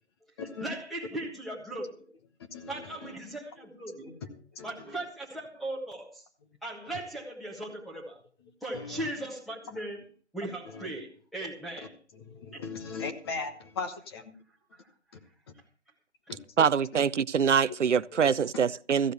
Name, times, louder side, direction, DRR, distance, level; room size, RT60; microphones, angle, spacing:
voice 1, 0.6-2.0 2.7-4.1 4.6-6.2 6.6-8.2 8.6-10.0 10.3-12.0 12.5-12.6 14.7-14.9, right 1 dB, ahead, 1.5 m, -38 dB
voice 2, 2.5-3.1 4.0-4.2 4.5-4.7 8.7-9.1 10.7-10.9 12.2-14.4 16.3-17.0, left 4 dB, 20° left, 1.1 m, -39 dB
voice 3, 16.6-19.1, right 7 dB, 85° right, 0.6 m, -24 dB
15.0 x 6.6 x 8.0 m
figure-of-eight pair, 150°, 35 cm